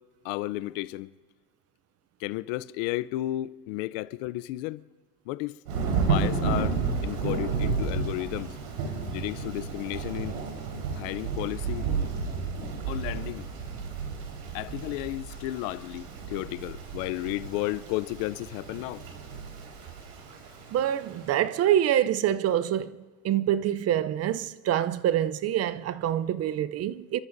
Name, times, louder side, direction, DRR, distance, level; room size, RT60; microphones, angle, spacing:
voice 1, 0.2-1.1 2.2-4.8 5.3-5.5 6.0-8.5 9.1-10.4 10.9-11.9 12.9-13.5 14.5-19.1, left 17 dB, 70° left, 0.6 m, -33 dB
Thunder / Rain, 5.7-21.3, right 5 dB, 85° right, 4.3 m, -32 dB
voice 2, 20.7-27.2, right 11 dB, 35° right, 0.6 m, -26 dB
29.5 x 13.5 x 2.6 m
supercardioid pair, 110°, 43 cm